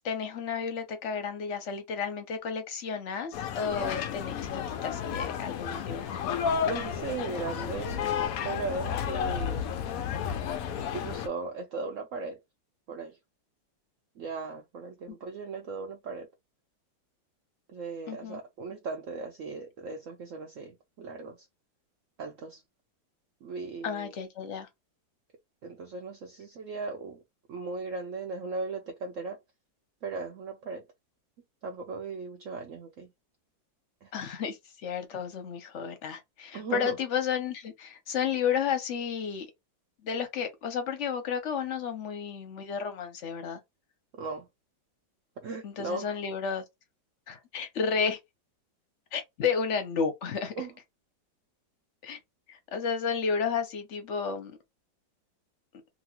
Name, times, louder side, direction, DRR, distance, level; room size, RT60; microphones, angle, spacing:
voice 1, 0.0-6.1 15.1-15.2 18.1-18.4 23.8-24.7 34.1-39.5 40.0-43.6 45.6-46.6 47.3-48.2 49.1-50.5 52.0-52.2 52.5-54.6, left 6 dB, 55° left, 0.8 m, -32 dB
sound 1, 3.3-11.3, left 8 dB, 80° left, 0.7 m, -32 dB
voice 2, 6.6-8.0 8.4-9.6 10.9-12.4 12.9-13.2 14.2-16.3 17.7-21.5 22.2-22.6 23.4-24.1 25.6-27.2 27.5-29.4 30.0-30.8 31.6-33.1 34.0-34.1 36.5-37.0 44.1-44.5 45.4-46.1 50.6-50.7, right 4 dB, 80° right, 0.7 m, -37 dB
2.9 x 2.6 x 2.9 m
omnidirectional pair, 2.0 m